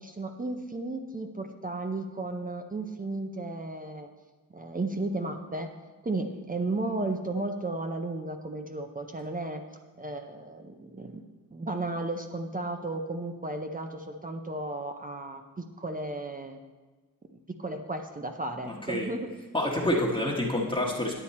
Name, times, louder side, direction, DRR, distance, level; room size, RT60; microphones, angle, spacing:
voice 1, 0.0-4.1 4.5-5.7 6.0-9.6 10.0-11.2 11.5-16.6 17.3-19.3, right 2 dB, 25° right, 4 dB, 0.6 m, -34 dB
voice 2, 18.7-19.1 19.5-21.2, left 1 dB, 15° left, -2 dB, 1.2 m, -28 dB
10.0 x 8.2 x 4.2 m, 1.3 s
wide cardioid pair, 105°, 34 cm